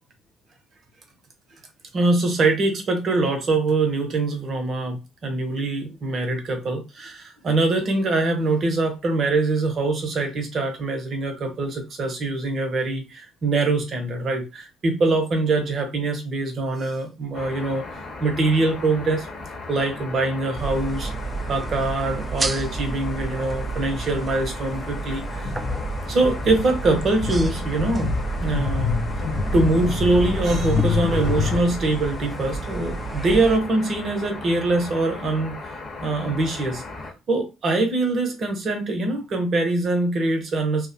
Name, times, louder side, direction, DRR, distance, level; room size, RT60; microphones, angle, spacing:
voice 1, 1.9-19.3 19.7-21.1 21.5-25.5 26.1-28.1 28.4-29.0 29.5-36.8 37.3-40.9, right 2 dB, 50° right, 5 dB, 0.7 m, -23 dB
sound 1, 17.3-37.1, left 3 dB, 45° left, 0.9 m, -37 dB
sound 2, 20.6-33.6, right 4 dB, 25° right, 0.3 m, -30 dB
sound 3, 25.4-31.6, left 7 dB, 60° left, 0.5 m, -27 dB
2.3 x 2.1 x 2.6 m, 0.27 s
hypercardioid pair, 50°, 0 cm